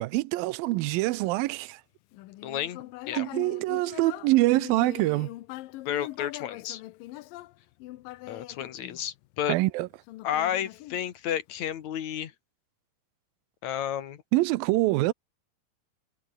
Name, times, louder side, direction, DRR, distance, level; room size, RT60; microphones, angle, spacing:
voice 1, 0.0-1.8 3.2-5.3 9.5-9.9 14.3-15.1, right 19 dB, 75° right, 2.4 m, -25 dB
Human voice, 2.1-9.5 10.1-11.5, left 17 dB, 75° left, 2.3 m, -42 dB
voice 2, 2.4-3.3 5.9-6.8 8.3-9.6 10.2-12.3 13.6-14.2, left 10 dB, 55° left, 2.4 m, -32 dB
omnidirectional pair, 4.5 m